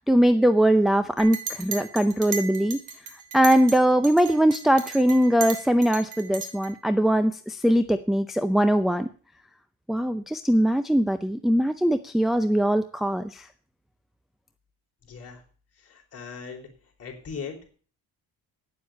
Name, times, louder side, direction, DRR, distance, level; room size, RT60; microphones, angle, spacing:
voice 1, 0.0-2.8 3.3-9.1 9.9-13.5, right 1 dB, ahead, 8 dB, 0.6 m, -21 dB
Chink clink, 1.2-3.8 4.0-6.7, right 5 dB, 55° right, 3.0 m, -35 dB
voice 2, 15.0-15.4 15.8-16.7 17.0-17.7, left 5 dB, 40° left, 1 dB, 4.0 m, -39 dB
9.3 x 7.5 x 8.5 m, 0.41 s
cardioid pair, 115°, 37 cm